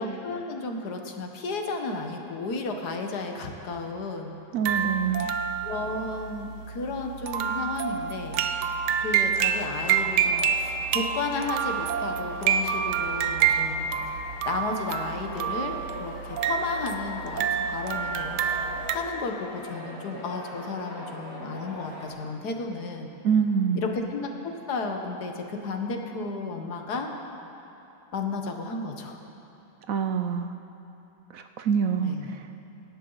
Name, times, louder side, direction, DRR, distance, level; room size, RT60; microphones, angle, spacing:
voice 1, 0.0-4.4 5.6-8.4 9.0-13.9 14.5-18.4 18.9-23.1 23.8-27.1 28.1-29.2 32.0-32.3, left 3 dB, 70° left, 3 dB, 1.8 m, -33 dB
voice 2, 4.5-5.3 23.2-23.9 29.9-30.5 31.3-32.7, right 7 dB, 65° right, 7 dB, 0.9 m, -26 dB
sound 1, 4.7-19.0, right 7 dB, 90° right, 1.3 m, -28 dB
sound 2, 9.3-22.1, equal, 15° left, 2.4 m, -42 dB
25.0 x 12.0 x 4.0 m, 2.9 s
omnidirectional pair, 1.8 m